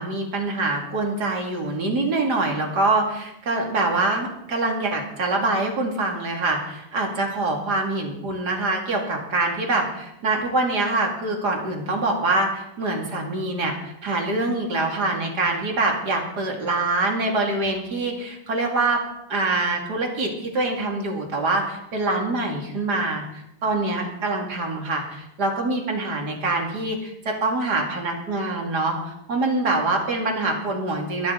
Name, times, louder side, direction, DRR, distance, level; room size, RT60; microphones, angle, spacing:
voice 1, 0.0-19.0 19.3-31.3, right 2 dB, 30° right, 1 dB, 2.9 m, -25 dB
22.0 x 12.5 x 4.1 m, 0.82 s
omnidirectional pair, 4.3 m